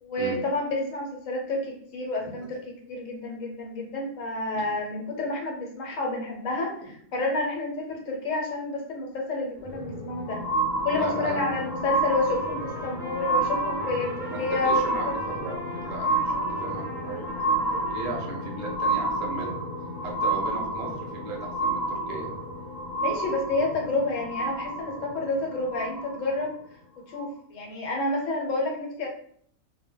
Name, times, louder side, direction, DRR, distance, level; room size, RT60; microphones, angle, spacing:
voice 1, 0.0-10.4 10.8-15.1 22.9-26.5 27.1-29.1, left 2 dB, 70° left, 0 dB, 1.0 m, -29 dB
sound 1, 9.6-26.4 27.2-27.3, right 2 dB, 35° left, 0.7 m, -30 dB
voice 2, 10.9-11.6 14.3-14.4 14.6-16.3 16.6-19.5 20.0-22.3, right 2 dB, 50° right, 0 dB, 0.7 m, -37 dB
Trumpet, 11.2-18.5, equal, 5° right, 0.8 m, -42 dB
2.2 x 2.1 x 3.6 m, 0.63 s
omnidirectional pair, 1.4 m